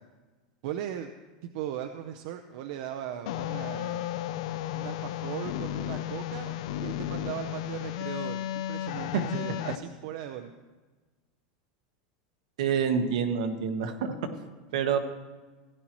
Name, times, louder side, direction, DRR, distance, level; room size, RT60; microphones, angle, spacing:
voice 1, 0.6-1.1 1.4-4.1 4.7-10.5, right 10 dB, 65° right, 7 dB, 0.6 m, -38 dB
sound 1, 3.3-9.8, left 12 dB, 75° left, 0.5 m, -34 dB
voice 2, 12.6-14.1 14.7-15.0, right 6 dB, 80° right, 7 dB, 1.2 m, -27 dB
16.0 x 10.0 x 3.0 m, 1.3 s
supercardioid pair, 140°, 4 cm